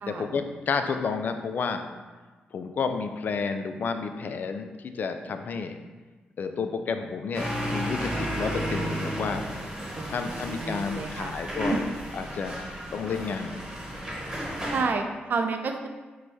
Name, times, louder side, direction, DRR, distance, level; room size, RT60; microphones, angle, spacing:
voice 1, 0.1-1.8 2.5-5.8 6.4-9.5 10.1-11.8 12.1-12.6 12.9-13.6, left 5 dB, 55° left, 7 dB, 0.3 m, -31 dB
sound 1, 7.3-14.8, equal, 15° right, 1.1 m, -33 dB
voice 2, 10.0-11.3 11.7-11.8 14.7-15.9, right 4 dB, 55° right, 5 dB, 0.4 m, -30 dB
4.6 x 2.2 x 4.1 m, 1.3 s
cardioid pair, 110°, 4 cm